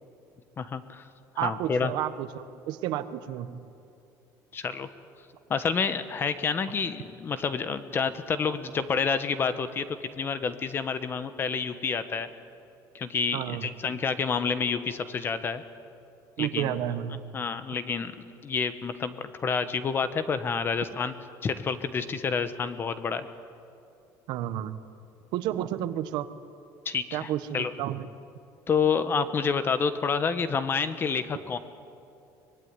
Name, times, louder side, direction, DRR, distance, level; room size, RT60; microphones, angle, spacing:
voice 1, 0.6-1.0 1.3-1.9 4.5-4.9 5.5-12.3 12.9-15.6 16.4-16.8 17.3-18.1 18.4-21.1 21.4-23.3 26.8-27.7 28.7-31.6, left 5 dB, 30° left, 11 dB, 1.2 m, -29 dB
voice 2, 1.4-3.6 13.3-13.7 16.4-17.2 24.3-24.8 25.3-26.3 27.1-28.1, right 12 dB, 70° right, 11 dB, 1.2 m, -31 dB
24.0 x 21.0 x 9.8 m, 2.6 s
cardioid pair, 150°, 8 cm